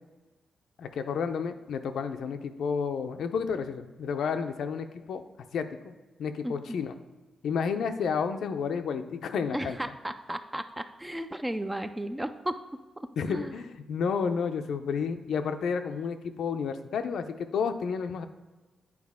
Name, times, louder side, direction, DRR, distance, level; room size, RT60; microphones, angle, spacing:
voice 1, 0.8-5.2 5.5-5.9 6.2-6.9 7.4-9.8 13.2-18.2, left 6 dB, 75° left, 8 dB, 0.5 m, -31 dB
voice 2, 6.4-6.8 9.5-12.6 13.0-13.6, right 1 dB, 10° right, 9 dB, 0.3 m, -35 dB
9.4 x 4.7 x 3.5 m, 1.2 s
wide cardioid pair, 145°, 0 cm